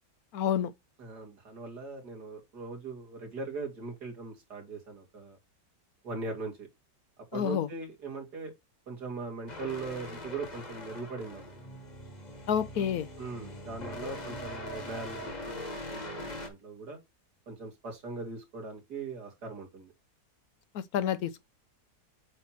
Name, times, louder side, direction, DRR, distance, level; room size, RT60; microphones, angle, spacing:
voice 1, 0.3-0.7 7.3-7.7 12.5-13.1 20.7-21.4, left 9 dB, 70° left, 1.0 m, -29 dB
voice 2, 1.0-5.4 6.0-6.7 7.3-8.5 8.9-11.4 12.7-12.8 13.2-17.0 17.5-19.9, right 3 dB, 70° right, 2.8 m, -40 dB
sound 1, 9.5-16.5, left 1 dB, 25° left, 1.4 m, -42 dB
8.2 x 3.0 x 5.7 m
omnidirectional pair, 1.8 m